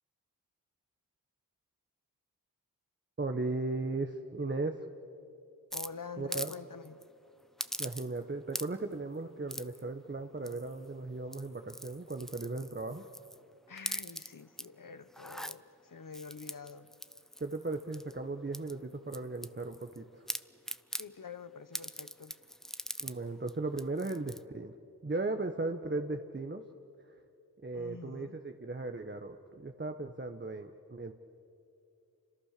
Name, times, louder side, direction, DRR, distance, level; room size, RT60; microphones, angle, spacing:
voice 1, 3.2-4.8 6.2-6.5 7.8-13.0 17.4-20.3 23.0-24.8 25.0-26.6 27.6-31.1, right 3 dB, 30° right, 5 dB, 1.3 m, -37 dB
voice 2, 5.7-7.0 13.7-16.9 20.9-22.4 27.7-28.4, left 5 dB, 60° left, 12 dB, 1.3 m, -47 dB
sound 1, 5.7-6.6 6.8-7.0 7.6-8.2 8.5-8.9 9.5-9.8 10.4-10.8 11.2-13.4 13.8-14.6 15.1-15.6 16.1-18.1 18.5-20.0 20.3-21.1 21.7-23.2 23.5-23.6 23.8-24.4, equal, ahead, 0.8 m, -41 dB
29.0 x 26.5 x 6.8 m, 2.6 s
cardioid pair, 45°, 38 cm